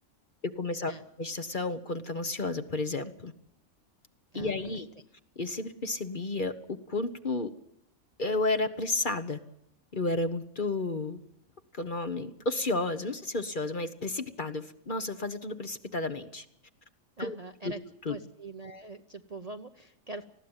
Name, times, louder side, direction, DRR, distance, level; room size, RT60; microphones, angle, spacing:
voice 1, 0.4-0.9 1.2-3.3 4.3-4.9 5.4-7.5 8.2-9.4 9.9-11.2 11.7-16.4 17.2-17.4 17.6-17.7 18.0-18.2, left 2 dB, 40° left, 9 dB, 1.1 m, -32 dB
voice 2, 4.3-4.9 17.2-17.8 18.1-20.2, right 2 dB, 35° right, 7 dB, 0.8 m, -43 dB
20.0 x 15.0 x 8.9 m, 0.80 s
omnidirectional pair, 1.5 m